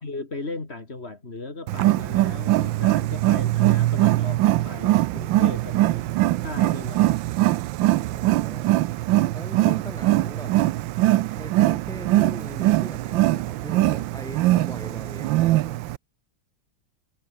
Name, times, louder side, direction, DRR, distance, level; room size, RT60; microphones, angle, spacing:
voice 1, 0.0-6.1 6.4-7.2, left 3 dB, 30° left, 3.2 m, -37 dB
Wild animals, 1.7-16.0, right 16 dB, 80° right, 1.3 m, -22 dB
voice 2, 8.0-8.7 9.3-10.5 11.3-15.8, equal, ahead, 3.1 m, -40 dB
omnidirectional pair, 2.1 m